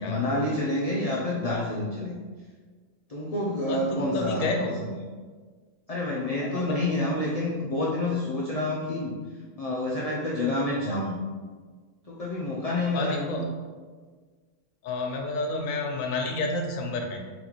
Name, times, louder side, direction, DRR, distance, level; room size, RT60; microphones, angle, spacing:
voice 1, 0.0-2.2 3.1-4.5 4.8-5.0 5.9-9.2 9.6-11.1 12.1-13.5, left 2 dB, 60° left, -3 dB, 0.3 m, -28 dB
voice 2, 3.6-4.8 6.4-7.2 12.9-13.6 14.8-17.2, left 2 dB, 90° left, 2 dB, 1.1 m, -30 dB
4.0 x 3.9 x 3.0 m, 1.5 s
omnidirectional pair, 1.3 m